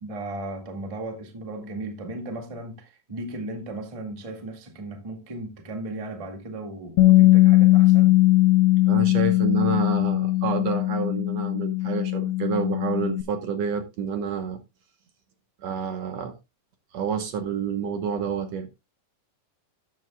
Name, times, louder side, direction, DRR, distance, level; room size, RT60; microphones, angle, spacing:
voice 1, 0.0-8.1, right 2 dB, 15° right, 1.3 m, -36 dB
Bass guitar, 7.0-13.2, left 18 dB, 80° left, 1.2 m, -19 dB
voice 2, 8.9-14.6 15.6-16.3 16.9-18.7, right 6 dB, 65° right, 2.0 m, -29 dB
13.0 x 9.4 x 2.3 m
omnidirectional pair, 3.5 m